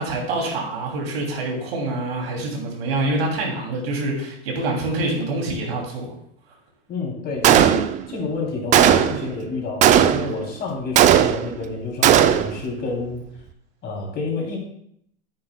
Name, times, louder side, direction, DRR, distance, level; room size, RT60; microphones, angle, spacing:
voice 1, 0.0-6.1, right 2 dB, 85° right, 0 dB, 2.8 m, -26 dB
voice 2, 6.9-13.2 13.8-14.6, left 3 dB, 35° left, -1 dB, 2.9 m, -29 dB
Gunshot gunfire, 7.4-8.2 8.7-9.3 9.8-10.4 11.0-11.6 12.0-12.6, right 10 dB, 25° right, 0.4 m, -16 dB
10.5 x 8.8 x 2.2 m, 0.70 s
supercardioid pair, 125°, 29 cm